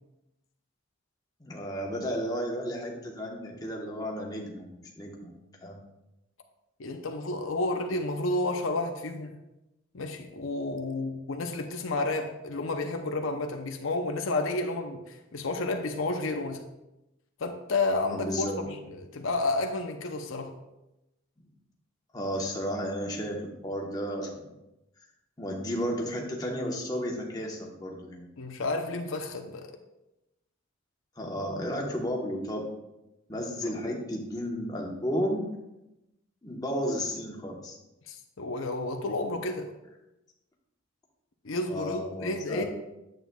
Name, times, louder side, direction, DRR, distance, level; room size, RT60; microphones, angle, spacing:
voice 1, 1.4-5.8 18.1-18.6 22.1-24.5 25.4-28.3 31.2-32.7 33.3-35.5 36.4-37.8 41.7-42.6, equal, 20° left, -1 dB, 1.1 m, -33 dB
voice 2, 6.8-9.3 9.9-16.6 17.4-18.5 18.8-20.6 28.4-29.7 33.6-33.7 38.1-39.7 41.4-42.6, left 2 dB, 75° left, 4 dB, 0.7 m, -31 dB
9.1 x 7.7 x 2.3 m, 0.92 s
head